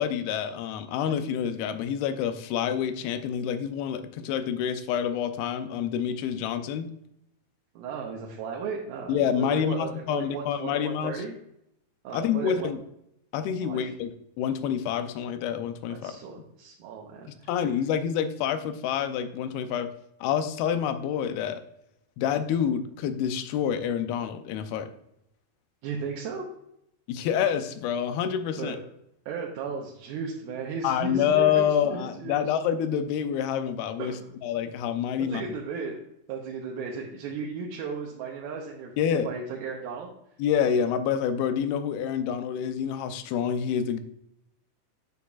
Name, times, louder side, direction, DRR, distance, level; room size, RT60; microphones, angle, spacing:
voice 1, 0.0-6.9 9.1-11.2 12.1-12.8 13.3-16.1 17.5-19.9 20.2-21.6 22.2-24.9 27.1-28.8 30.8-35.4 39.0-39.3 40.4-44.0, left 8 dB, 85° left, 9 dB, 2.6 m, -27 dB
voice 2, 7.8-11.3 12.0-12.7 13.6-13.9 15.9-17.5 25.8-26.4 28.6-28.8 29.3-32.4 34.0-34.3 35.3-36.0 36.3-40.1, right 5 dB, 80° right, -1 dB, 2.7 m, -35 dB
9.1 x 6.7 x 2.3 m, 0.78 s
omnidirectional pair, 4.3 m